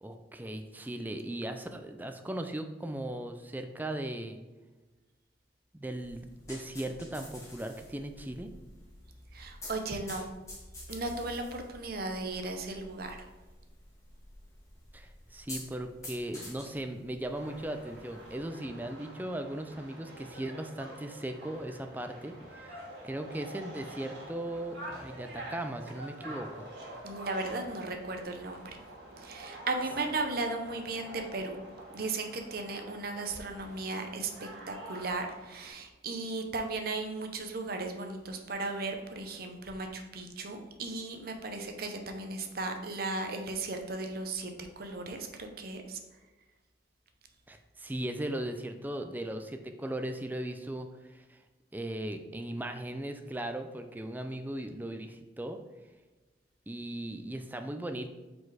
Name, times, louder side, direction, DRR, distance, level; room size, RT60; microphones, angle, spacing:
voice 1, 0.0-4.4 5.7-8.5 14.9-22.7 23.0-26.7 47.5-51.4 51.7-55.6 56.7-58.1, right 1 dB, 10° right, 6 dB, 0.4 m, -38 dB
sound 1, 6.0-18.4, left 1 dB, 15° left, 1.4 m, -49 dB
voice 2, 9.3-10.3 10.9-13.3 27.0-28.7 29.2-31.6 31.9-44.5 44.8-46.0, right 3 dB, 50° right, 4 dB, 0.7 m, -36 dB
sound 2, 17.3-35.7, right 1 dB, 70° right, 2.0 m, -47 dB
4.8 x 4.1 x 4.8 m, 1.2 s
head